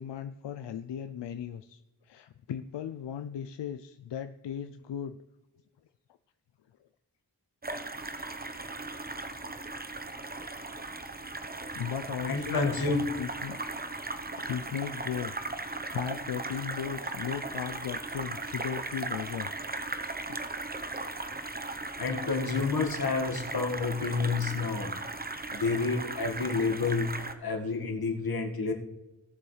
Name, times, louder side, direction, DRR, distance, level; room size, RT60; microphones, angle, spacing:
voice 1, 0.0-5.2 11.7-13.6 14.4-19.5 20.3-20.4, left 8 dB, 85° left, 9 dB, 0.5 m, -37 dB
sound 1, 7.6-27.3, right 2 dB, 20° right, 0.9 m, -37 dB
voice 2, 12.3-13.1 22.0-24.9 25.5-27.1 27.4-28.7, left 4 dB, 60° left, 3 dB, 1.8 m, -29 dB
18.0 x 7.0 x 3.3 m, 1.1 s
wide cardioid pair, 85°, 42 cm